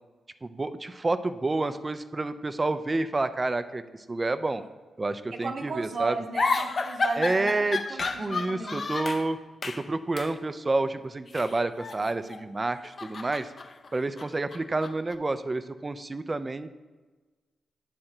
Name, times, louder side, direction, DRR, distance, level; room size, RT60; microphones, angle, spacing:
voice 1, 0.4-3.8 4.1-4.6 5.0-6.1 7.2-9.4 9.6-13.5 13.9-16.7, right 2 dB, 35° right, 12 dB, 0.4 m, -29 dB
voice 2, 5.4-8.8, right 4 dB, 60° right, 4 dB, 0.8 m, -35 dB
sound 1, 6.3-9.3 9.6-9.9 10.2-10.4 11.3-12.4 12.8-15.1, left 4 dB, 50° left, 0.5 m, -32 dB
9.7 x 3.7 x 4.4 m, 1.3 s
hypercardioid pair, 40°, 0 cm